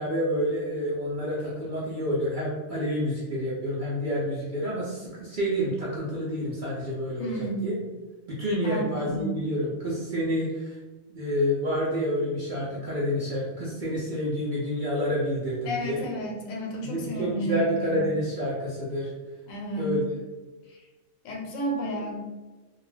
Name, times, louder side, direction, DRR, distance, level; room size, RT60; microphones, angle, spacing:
voice 1, 0.0-7.8 8.3-10.8 11.1-16.0 16.8-19.1 19.8-20.0, equal, 60° right, -6 dB, 0.5 m, -28 dB
voice 2, 7.2-7.7 8.6-9.4 15.6-18.1 19.5-20.0 20.7-20.8 21.2-22.2, right 2 dB, 85° left, 0 dB, 1.1 m, -32 dB
2.3 x 2.3 x 3.1 m, 1.2 s
omnidirectional pair, 1.4 m